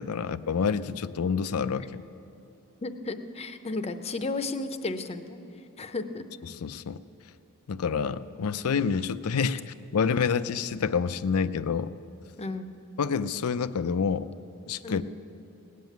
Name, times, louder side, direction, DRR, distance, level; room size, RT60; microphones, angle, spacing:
voice 1, 0.0-2.0 6.4-7.0 7.7-11.9 13.0-14.3 14.7-15.0, left 6 dB, 75° left, 15 dB, 0.5 m, -28 dB
voice 2, 2.8-5.4 5.8-6.2 12.4-12.8 14.8-15.0, left 3 dB, 30° left, 9 dB, 0.7 m, -33 dB
18.5 x 7.5 x 9.2 m, 2.8 s
head